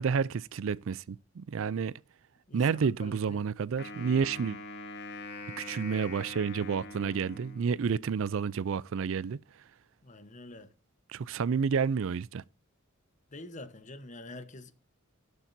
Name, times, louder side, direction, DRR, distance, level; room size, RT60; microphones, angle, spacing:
voice 1, 0.0-1.9 2.5-4.6 5.5-9.4 11.1-12.4, right 6 dB, 60° right, 0.4 m, -30 dB
voice 2, 2.5-3.4 10.0-10.7 13.3-14.7, left 2 dB, 35° left, 1.1 m, -46 dB
Wind instrument woodwind instrument, 3.8-8.1, left 2 dB, 50° left, 2.2 m, -44 dB
17.5 x 7.2 x 2.7 m
head